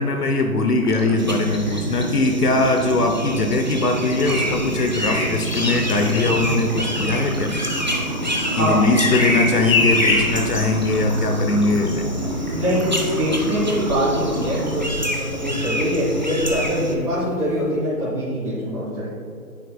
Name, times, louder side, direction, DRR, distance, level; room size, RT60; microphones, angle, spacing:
voice 1, 0.0-7.6 8.6-12.0, left 2 dB, 80° left, 4 dB, 0.8 m, -21 dB
sound 1, 0.6-14.8, right 1 dB, 15° left, 0.6 m, -30 dB
sound 2, 1.2-16.9, equal, 30° right, 0.4 m, -29 dB
Bird vocalization bird call bird song, 3.9-15.7 17.5-17.7, left 2 dB, 60° left, 1.3 m, -28 dB
voice 2, 12.5-19.1, equal, 5° right, -13 dB, 2.0 m, -23 dB
9.5 x 9.0 x 2.3 m, 2.4 s
figure-of-eight pair, 145°, 46 cm